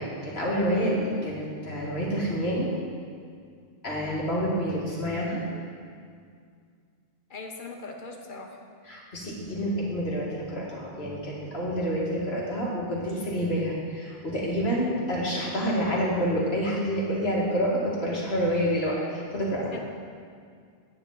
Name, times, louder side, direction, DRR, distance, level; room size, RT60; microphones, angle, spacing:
voice 1, 0.0-2.7 3.8-5.4 8.9-19.7, equal, 70° left, -5 dB, 2.3 m, -28 dB
voice 2, 7.3-8.7 17.3-17.6 19.7-19.8, left 3 dB, 50° left, 2 dB, 1.1 m, -41 dB
9.9 x 9.3 x 4.0 m, 2.2 s
omnidirectional pair, 1.1 m